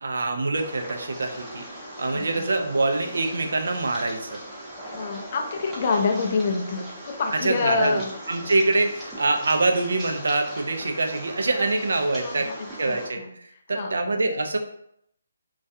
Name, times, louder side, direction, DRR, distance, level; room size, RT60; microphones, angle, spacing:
voice 1, 0.0-1.6 2.0-4.4 7.3-12.5 12.8-13.2 13.7-14.6, right 2 dB, 75° right, 4 dB, 0.4 m, -25 dB
sound 1, 0.5-13.1, right 1 dB, 5° right, 0.6 m, -40 dB
voice 2, 4.9-8.1 12.2-12.5 12.9-13.3 13.7-14.0, left 4 dB, 40° left, 3 dB, 0.4 m, -26 dB
2.3 x 2.2 x 2.6 m, 0.73 s
hypercardioid pair, 155°, 0 cm